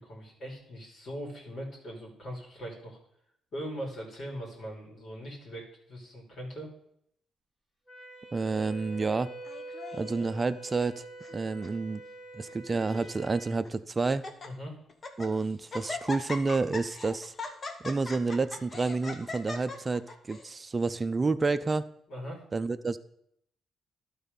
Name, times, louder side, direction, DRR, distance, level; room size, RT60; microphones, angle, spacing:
voice 1, 0.0-3.0 3.5-6.7 14.4-14.8 22.1-22.4, equal, 55° left, -2 dB, 3.0 m, -40 dB
Wind instrument woodwind instrument, 7.9-13.6, right 2 dB, 15° left, 2.4 m, -45 dB
voice 2, 8.3-9.3 9.9-11.0 11.3-12.0 12.3-14.3 15.2-17.3 17.8-21.8 22.5-23.0, right 3 dB, 25° right, 12 dB, 0.5 m, -29 dB
Laughter, 9.5-10.3 11.0-11.4 11.6-11.7 12.5-13.1 13.6-13.7 14.1-14.5 14.9-15.3 15.7-20.5, left 3 dB, 35° left, 1.1 m, -40 dB
12.0 x 4.1 x 5.3 m, 0.70 s
cardioid pair, 90°, 0 cm